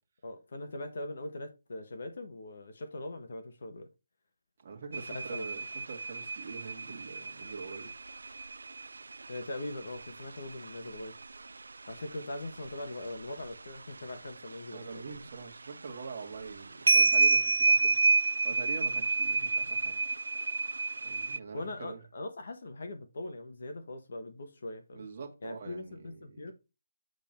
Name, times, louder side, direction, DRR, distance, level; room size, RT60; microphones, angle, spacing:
voice 1, 0.2-3.9 5.1-5.4 9.3-11.1 11.9-15.1 21.5-25.1 25.4-26.5, left 2 dB, 55° left, 1.3 m, -41 dB
voice 2, 4.6-7.9 14.7-18.0 18.4-20.0 21.0-22.0 24.9-26.5, right 5 dB, 40° right, 1.8 m, -44 dB
sound 1, 4.9-11.5 11.9-13.5 13.9-15.2 15.9-16.0 16.3-21.4, right 4 dB, 85° right, 0.4 m, -29 dB
8.0 x 3.7 x 4.4 m
hypercardioid pair, 170°, 0 cm